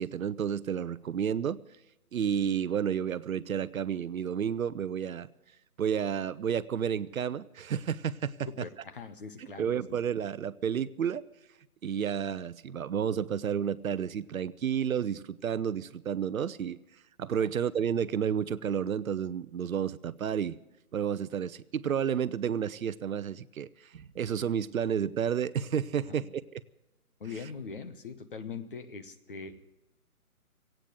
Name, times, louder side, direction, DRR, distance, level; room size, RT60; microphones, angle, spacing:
voice 1, 0.0-1.6 2.1-5.3 5.8-8.7 9.6-11.2 11.8-16.8 17.2-20.6 20.9-26.6 27.3-27.5, right 8 dB, 65° right, 17 dB, 0.7 m, -31 dB
voice 2, 8.6-9.8 17.4-17.5 26.1-26.3 27.2-29.8, left 5 dB, 35° left, 8 dB, 0.9 m, -42 dB
16.5 x 9.1 x 9.8 m, 0.94 s
hypercardioid pair, 165°, 44 cm